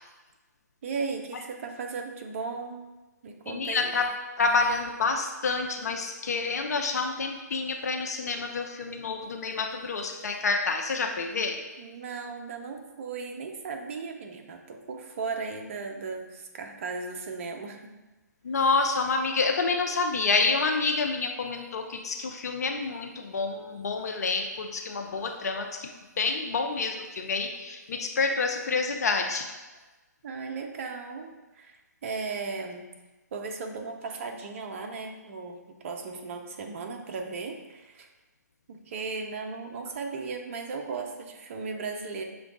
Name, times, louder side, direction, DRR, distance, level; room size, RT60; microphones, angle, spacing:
voice 1, 0.8-2.8 3.2-4.0 11.8-17.9 30.2-32.9 33.3-38.1 38.7-42.2, right 4 dB, 45° right, 3 dB, 0.6 m, -36 dB
voice 2, 3.5-4.1 4.4-11.6 18.4-29.5, left 4 dB, 60° left, 3 dB, 0.5 m, -28 dB
5.9 x 2.3 x 3.8 m, 1.1 s
figure-of-eight pair, 135°, 10 cm